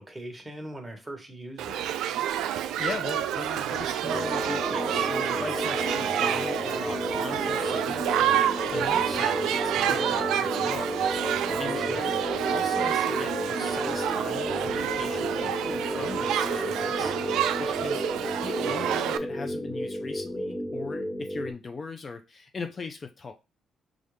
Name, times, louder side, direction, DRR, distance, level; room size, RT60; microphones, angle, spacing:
voice 1, 0.0-1.9 11.4-12.1, right 1 dB, 15° right, 1.2 m, -40 dB
Shout / Human group actions, 1.6-19.2, right 10 dB, 85° right, 0.3 m, -28 dB
voice 2, 2.8-11.0 11.6-12.1 12.4-18.0 18.4-23.3, left 4 dB, 35° left, 0.5 m, -39 dB
sound 1, 4.1-21.5, equal, 20° left, 1.0 m, -32 dB
5.5 x 2.4 x 3.3 m
cardioid pair, 90°, 0 cm